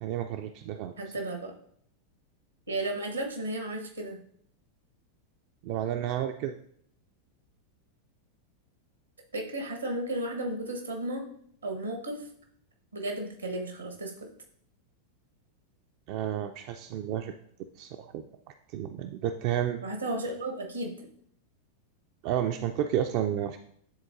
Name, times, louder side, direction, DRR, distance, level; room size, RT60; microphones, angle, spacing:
voice 1, 0.0-0.9 5.6-6.5 16.1-17.4 17.8-18.2 18.7-19.8 22.2-23.6, right 10 dB, 45° right, 7 dB, 0.3 m, -31 dB
voice 2, 1.0-1.5 2.7-4.2 9.3-11.2 11.6-12.3 12.9-14.1 19.8-21.1, right 1 dB, 80° right, 2 dB, 1.2 m, -34 dB
9.9 x 3.8 x 2.6 m, 0.66 s
figure-of-eight pair, 90°, 0 cm